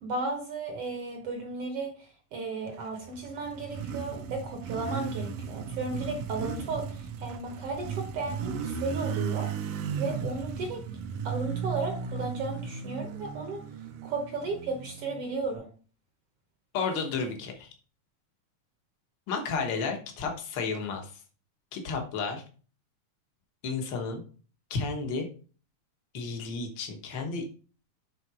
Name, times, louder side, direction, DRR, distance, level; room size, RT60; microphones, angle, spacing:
voice 1, 0.0-9.5 10.0-10.8 11.2-13.6 14.0-15.7, right 3 dB, 65° right, 3 dB, 1.5 m, -34 dB
Motorcycle, 2.9-15.5, right 6 dB, 85° right, 1.4 m, -36 dB
voice 2, 16.7-17.7 19.3-21.2 21.7-22.4 23.6-24.2 24.7-25.3 26.1-27.4, left 4 dB, 65° left, 3 dB, 1.1 m, -32 dB
7.6 x 3.9 x 4.8 m, 0.39 s
omnidirectional pair, 3.8 m